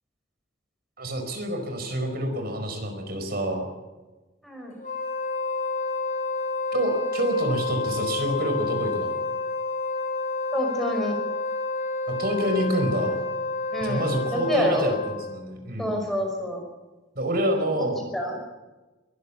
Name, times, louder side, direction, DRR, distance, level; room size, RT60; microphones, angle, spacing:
voice 1, 1.0-3.7 6.7-9.1 12.1-13.1 13.8-16.0 17.1-18.0, right 1 dB, 50° right, 5 dB, 4.8 m, -27 dB
Wind instrument woodwind instrument, 4.8-15.4, left 2 dB, 40° left, 5.8 m, -29 dB
voice 2, 10.5-11.2 13.7-14.9 15.8-16.6 17.8-18.4, equal, ahead, 1 dB, 5.6 m, -28 dB
23.0 x 15.5 x 8.4 m, 1.2 s
head